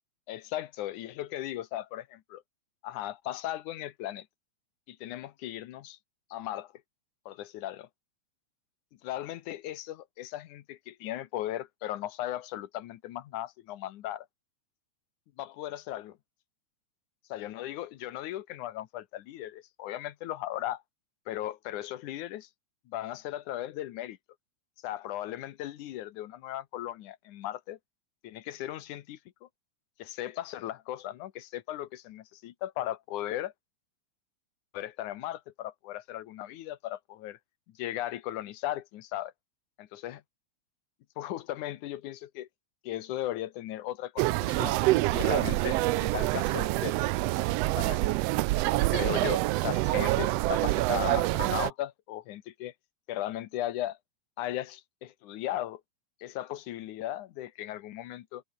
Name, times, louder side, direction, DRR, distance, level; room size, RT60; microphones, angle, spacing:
voice 1, 0.3-2.4 2.8-4.3 4.9-6.0 6.3-6.7 7.3-7.9 9.0-14.3 15.4-16.2 17.3-20.8 21.3-22.5 22.9-24.2 24.8-27.8 28.2-29.5 30.0-33.5 34.7-37.4 37.7-39.3 39.8-40.2 41.2-42.5 42.8-44.8 45.1-47.0 47.8-48.3 48.7-52.7 53.1-54.0 54.4-55.8 56.2-58.4, left 13 dB, 90° left, 2.6 m, -37 dB
sound 1, 44.2-51.7, right 19 dB, 85° right, 1.4 m, -26 dB
omnidirectional pair, 3.4 m